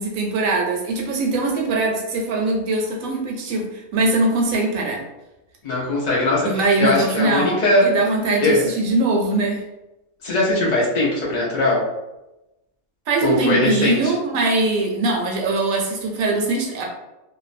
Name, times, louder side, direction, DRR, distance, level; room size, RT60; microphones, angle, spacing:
voice 1, 0.0-3.7 3.9-5.0 6.4-7.5 7.8-9.6 13.1-16.8, right 2 dB, 75° right, 1 dB, 1.0 m, -21 dB
voice 2, 5.6-7.9 8.4-8.6 10.2-11.8 13.2-14.2, left 2 dB, 65° left, -5 dB, 0.4 m, -20 dB
2.6 x 2.0 x 2.5 m, 0.96 s
omnidirectional pair, 1.5 m